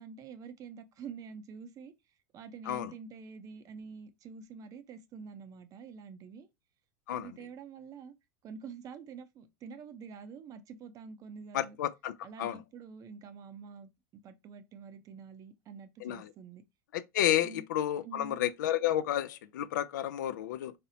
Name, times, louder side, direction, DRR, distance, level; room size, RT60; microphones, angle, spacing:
voice 1, 0.0-1.9 2.3-6.5 7.1-8.1 8.4-11.8 12.2-13.9 14.2-16.6 17.4-17.6 18.0-18.5, right 5 dB, 35° right, 0.5 m, -47 dB
voice 2, 11.5-12.1 12.4-12.6 16.0-16.3 16.9-20.7, left 12 dB, 85° left, 0.4 m, -31 dB
4.2 x 2.0 x 2.7 m
supercardioid pair, 115°, 10 cm